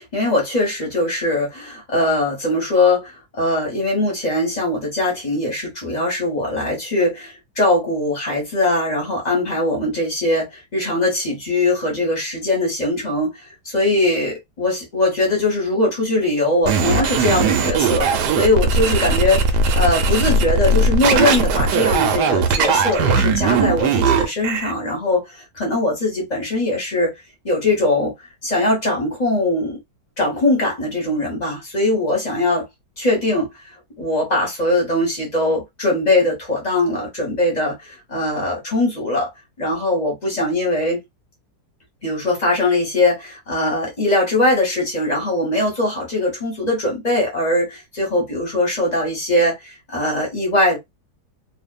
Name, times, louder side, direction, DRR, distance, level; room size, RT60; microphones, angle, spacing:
voice 1, 0.0-13.3 13.6-18.1 18.4-27.1 27.4-28.1 28.4-29.8 30.2-32.6 33.0-33.5 34.0-39.3 39.6-41.0 42.0-50.8, left 2 dB, 30° left, 1.0 m, -21 dB
sound 1, 16.7-24.7, right 4 dB, 75° right, 1.1 m, -18 dB
2.7 x 2.4 x 2.2 m
omnidirectional pair, 1.9 m